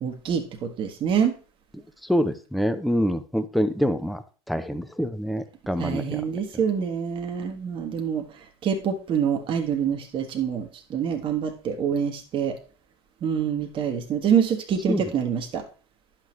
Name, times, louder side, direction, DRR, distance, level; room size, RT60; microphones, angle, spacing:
voice 1, 0.0-1.3 5.8-8.2 8.6-12.5 13.2-15.6, right 7 dB, 40° right, 4 dB, 1.3 m, -26 dB
voice 2, 2.1-4.2 4.5-6.2 14.9-15.0, equal, ahead, 10 dB, 0.7 m, -25 dB
10.5 x 6.1 x 3.2 m, 0.37 s
figure-of-eight pair, 75°, 14 cm